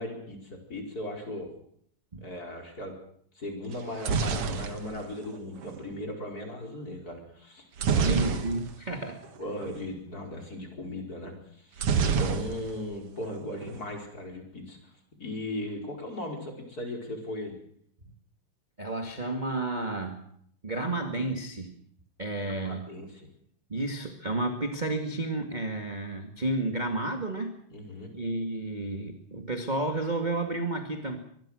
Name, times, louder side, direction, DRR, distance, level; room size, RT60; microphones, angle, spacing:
voice 1, 0.0-1.5 2.2-3.0 3.3-8.5 9.4-14.9 15.2-17.5 22.4-23.3 27.7-28.1, left 1 dB, 25° left, 2 dB, 5.1 m, -37 dB
sound 1, 3.7-5.8 7.8-8.9 9.2-9.4 9.6-9.8 11.8-12.9 13.2-13.8, right 6 dB, 50° right, 2.1 m, -28 dB
voice 2, 8.0-9.2 18.8-20.2 20.6-21.7 22.2-22.8 23.7-27.5 28.1-31.2, right 2 dB, 20° right, 3 dB, 1.6 m, -31 dB
24.0 x 21.5 x 6.4 m, 0.66 s
omnidirectional pair, 3.8 m